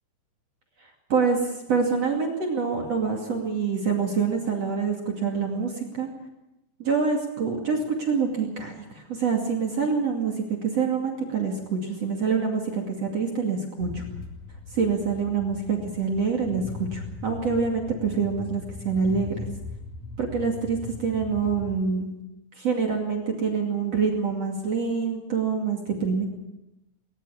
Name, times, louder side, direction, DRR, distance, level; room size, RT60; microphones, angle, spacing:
voice 1, 1.7-6.1 6.8-10.3 10.6-14.0 14.7-19.3 20.2-22.1 22.6-26.2, right 5 dB, 40° right, 1 dB, 2.9 m, -26 dB
sound 1, 13.8-21.7, left 3 dB, 45° left, 3.0 m, -39 dB
20.0 x 20.0 x 7.1 m, 0.92 s
omnidirectional pair, 5.4 m